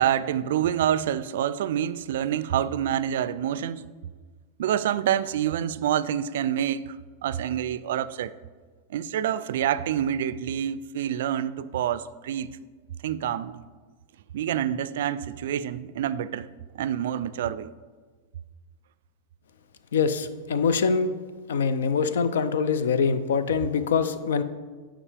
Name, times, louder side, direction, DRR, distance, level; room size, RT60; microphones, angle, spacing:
voice 1, 0.0-3.9 4.6-7.0 7.2-8.3 8.9-12.6 13.0-13.6 14.3-16.5 16.7-17.7 20.6-20.7, right 10 dB, 75° right, 0.3 m, -27 dB
voice 2, 19.9-21.1 21.5-24.4, left 5 dB, 90° left, 0.5 m, -24 dB
10.0 x 5.0 x 3.4 m
supercardioid pair, 135°, 0 cm